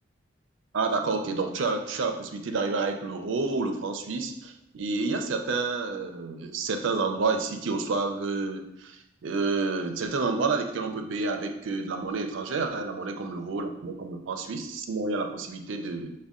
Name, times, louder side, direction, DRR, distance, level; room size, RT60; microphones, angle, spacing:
voice 1, 0.7-16.1, right 3 dB, 65° right, 5 dB, 0.4 m, -29 dB
5.2 x 2.1 x 3.6 m, 0.84 s
head